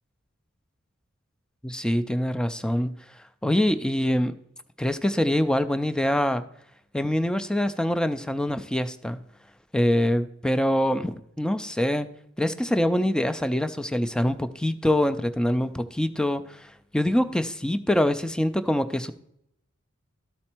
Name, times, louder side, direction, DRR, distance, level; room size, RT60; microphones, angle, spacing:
voice 1, 1.6-2.9 3.4-4.3 4.8-6.4 6.9-9.2 9.7-12.1 12.4-19.1, left 1 dB, 5° left, 10 dB, 0.3 m, -24 dB
13.0 x 4.3 x 4.4 m, 0.76 s
head